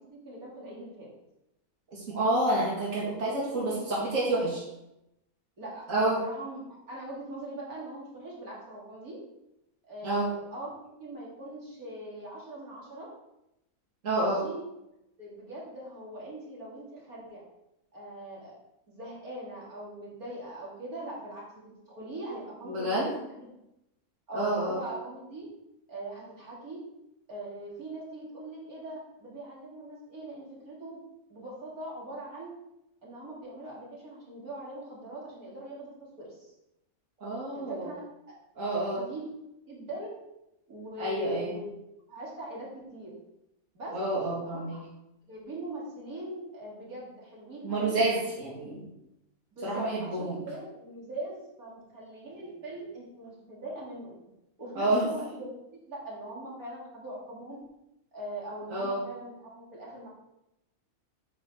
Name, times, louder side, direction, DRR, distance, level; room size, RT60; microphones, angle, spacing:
voice 1, 0.1-1.1 3.4-4.0 5.6-9.2 9.9-13.1 14.2-14.6 15.2-17.4 17.9-18.5 18.9-23.5 24.3-25.5 25.9-26.8 27.3-31.0 31.3-32.5 33.0-35.9 36.2-36.5 37.5-38.0 38.6-40.1 40.7-41.7 42.1-43.1 43.7-44.0 44.4-44.9 45.3-48.0 49.5-54.1 54.6-57.6 58.1-60.1, right 1 dB, 90° right, -5 dB, 3.6 m, -41 dB
voice 2, 1.9-4.6 5.9-6.2 10.0-10.3 14.0-14.4 22.7-23.1 24.3-24.8 37.2-37.9 38.6-39.0 41.0-41.5 43.9-44.8 47.6-48.9 49.6-50.4 54.8-55.1 58.7-59.0, right 2 dB, 60° right, -5 dB, 2.6 m, -28 dB
9.0 x 5.7 x 6.5 m, 0.87 s
omnidirectional pair, 1.5 m